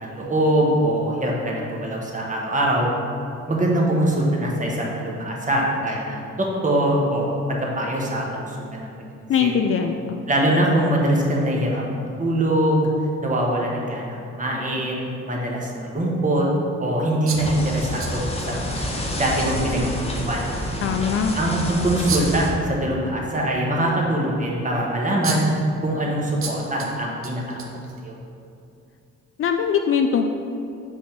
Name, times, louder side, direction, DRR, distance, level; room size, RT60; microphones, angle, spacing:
voice 1, 0.0-2.9 3.5-9.1 9.4-9.5 10.3-12.9 13.2-16.5 16.8-18.9 19.2-20.4 21.3-25.5 25.8-27.6 28.0-28.1, right 1 dB, 25° right, -2 dB, 1.2 m, -23 dB
voice 2, 9.3-10.2 20.8-21.3 29.4-30.3, left 7 dB, 45° left, 5 dB, 0.4 m, -21 dB
sound 1, 17.3-22.5, left 1 dB, 20° left, 0.9 m, -28 dB
sound 2, 17.3-18.8 19.1-19.2 19.7-19.8 22.1-22.5 24.7-24.8 25.2-25.6 26.4-26.9 27.2-28.2, right 5 dB, 45° right, 0.8 m, -31 dB
5.1 x 3.6 x 5.7 m, 2.5 s
cardioid pair, 90°, 30 cm